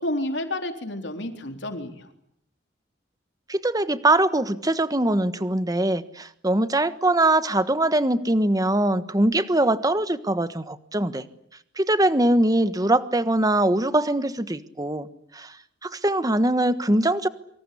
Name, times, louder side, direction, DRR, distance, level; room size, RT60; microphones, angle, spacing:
voice 1, 0.0-2.1, left 1 dB, 70° left, 5 dB, 3.9 m, -30 dB
voice 2, 3.5-11.3 11.8-15.1 15.3-15.6 15.8-17.3, right 1 dB, 20° right, 12 dB, 1.3 m, -22 dB
27.0 x 25.5 x 8.5 m, 0.71 s
head